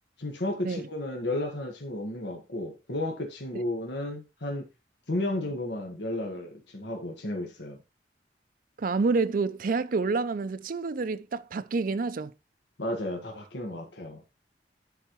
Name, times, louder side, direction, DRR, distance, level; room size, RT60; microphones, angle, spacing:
voice 1, 0.2-4.7 5.1-7.8 12.8-14.2, left 1 dB, 85° left, 1.5 m, -33 dB
voice 2, 8.8-12.3, right 4 dB, 50° right, 0.5 m, -28 dB
11.0 x 4.2 x 3.1 m
head